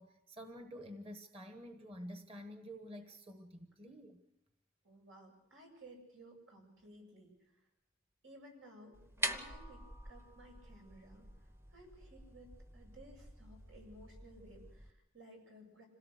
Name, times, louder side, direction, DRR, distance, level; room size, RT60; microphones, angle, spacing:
voice 1, 0.0-4.2, equal, 30° right, 6 dB, 1.3 m, -49 dB
voice 2, 4.8-7.3 8.2-11.3 11.7-15.9, right 1 dB, 85° right, 1 dB, 8.0 m, -57 dB
sound 1, 8.9-14.9, right 2 dB, 15° right, 0.8 m, -45 dB
26.5 x 17.5 x 6.5 m, 0.85 s
head